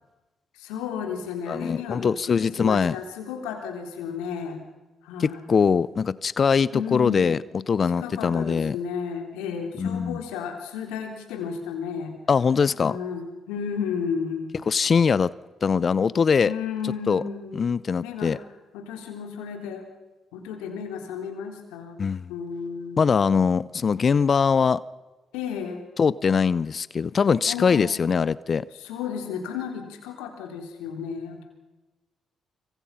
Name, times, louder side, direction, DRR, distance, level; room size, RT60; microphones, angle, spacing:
voice 1, 0.6-4.6 5.0-5.5 6.7-7.4 8.0-12.1 12.8-14.5 16.4-17.6 18.0-18.4 18.7-19.9 20.3-22.0 22.3-23.2 25.3-25.8 27.5-27.9 28.7-31.4, left 7 dB, 85° left, 4 dB, 3.4 m, -33 dB
voice 2, 1.5-3.0 5.2-7.4 7.7-8.8 9.8-10.2 12.3-13.0 14.7-15.3 15.6-16.5 17.1-17.2 17.5-18.4 22.0-22.3 23.0-24.8 26.0-28.7, left 6 dB, 50° left, 20 dB, 0.6 m, -22 dB
26.0 x 24.5 x 5.8 m, 1.2 s
hypercardioid pair, 50°, 0 cm